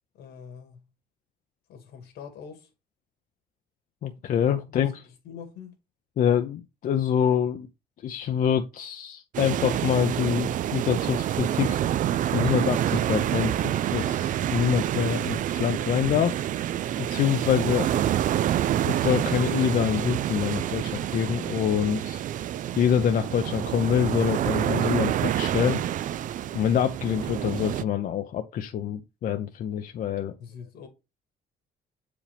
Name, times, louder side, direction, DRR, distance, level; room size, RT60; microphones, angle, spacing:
voice 1, 0.1-0.9 1.7-2.7 4.6-5.7 30.4-30.9, left 7 dB, 75° left, 2.0 m, -44 dB
voice 2, 4.0-5.0 6.2-7.7 8.0-11.8 12.3-16.4 17.0-17.9 18.8-22.2 22.8-25.8 26.5-30.3, left 8 dB, 55° left, 0.7 m, -26 dB
sound 1, 9.3-27.8, right 11 dB, 50° right, 0.4 m, -27 dB
7.4 x 4.9 x 3.4 m
cardioid pair, 110°, 17 cm